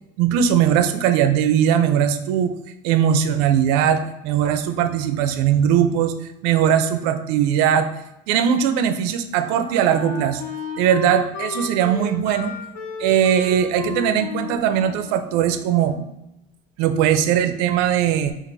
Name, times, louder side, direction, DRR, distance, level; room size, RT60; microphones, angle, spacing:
voice 1, 0.2-2.5 2.8-6.2 6.4-7.9 8.3-10.4 10.8-12.5 13.0-16.0 16.8-18.3, right 9 dB, 75° right, 9 dB, 0.5 m, -19 dB
Wind instrument woodwind instrument, 9.0-16.2, left 6 dB, 60° left, 0.8 m, -34 dB
3.9 x 2.5 x 4.5 m, 0.85 s
cardioid pair, 170°, 17 cm